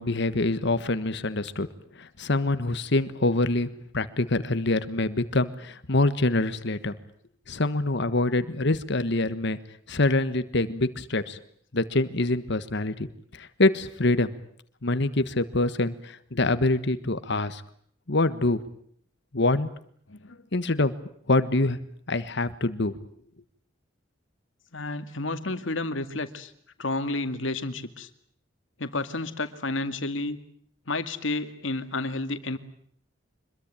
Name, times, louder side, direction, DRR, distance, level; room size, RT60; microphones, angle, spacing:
voice 1, 0.0-1.7 2.0-6.9 7.5-9.6 9.9-11.4 11.7-13.1 13.3-14.3 14.8-17.6 18.1-18.6 19.3-19.7 20.5-20.9 21.3-21.8 22.1-22.9, left 2 dB, 65° left, 13 dB, 1.4 m, -25 dB
voice 2, 24.7-26.5 26.8-28.1 28.8-30.4 30.9-32.6, left 2 dB, 80° left, 10 dB, 2.2 m, -31 dB
25.5 x 22.0 x 8.9 m, 0.63 s
head